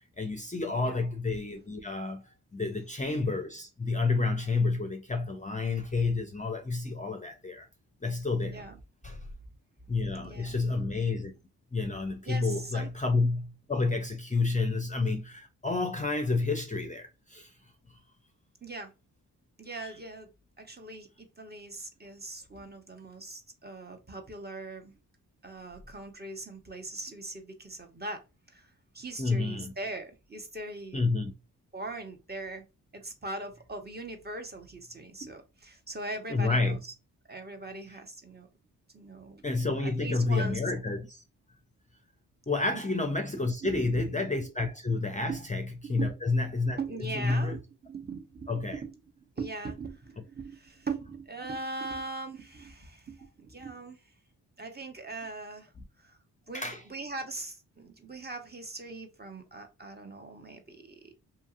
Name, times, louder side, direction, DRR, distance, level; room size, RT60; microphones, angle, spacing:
voice 1, 0.2-2.2 2.5-7.7 8.0-8.6 9.0-9.2 9.9-11.3 11.7-17.5 19.9-20.0 29.2-29.7 30.9-31.3 36.3-36.8 39.4-41.2 42.5-46.8 47.1-47.6 48.5-48.8 56.5-56.8, left 3 dB, 20° left, 0.5 m, -29 dB
voice 2, 8.4-8.8 10.2-10.6 12.3-12.9 18.6-18.9 19.6-20.3 20.6-24.9 25.4-28.2 28.5-28.7 28.9-31.0 31.7-32.6 32.9-36.8 37.3-38.5 38.9-39.4 39.8-40.6 42.7-42.8 43.6-44.0 45.3-45.4 45.8-46.2 46.8-48.9 49.4-54.0 54.6-55.7 56.0-56.2 56.5-61.1, right 3 dB, 25° right, 0.8 m, -40 dB
2.8 x 2.6 x 2.4 m
supercardioid pair, 45°, 39 cm